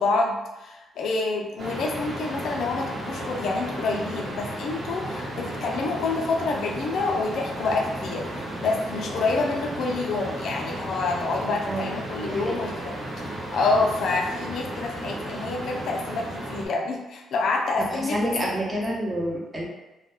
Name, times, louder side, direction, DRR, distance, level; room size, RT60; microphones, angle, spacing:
voice 1, 0.0-18.5, left 3 dB, 70° left, 1 dB, 0.4 m, -27 dB
sound 1, 1.6-16.7, right 1 dB, 55° right, 0.9 m, -34 dB
voice 2, 12.3-12.6 17.8-19.6, right 1 dB, 25° right, -3 dB, 0.7 m, -28 dB
2.2 x 2.1 x 3.0 m, 1.1 s
cardioid pair, 80°, 0 cm